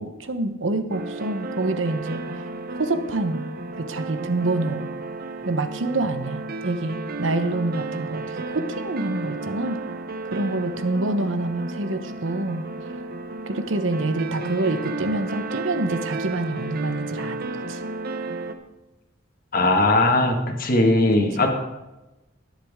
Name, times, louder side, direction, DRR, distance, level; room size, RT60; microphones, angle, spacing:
voice 1, 0.0-2.2 2.8-3.5 3.8-4.9 5.5-9.8 10.3-12.7 13.5-17.8 21.4-21.5, right 2 dB, 75° right, 9 dB, 1.0 m, -26 dB
sound 1, 0.9-18.5, right 2 dB, 50° right, 0.8 m, -33 dB
voice 2, 19.5-21.5, left 2 dB, 45° left, 3 dB, 1.8 m, -19 dB
20.5 x 7.5 x 3.7 m, 1.0 s
head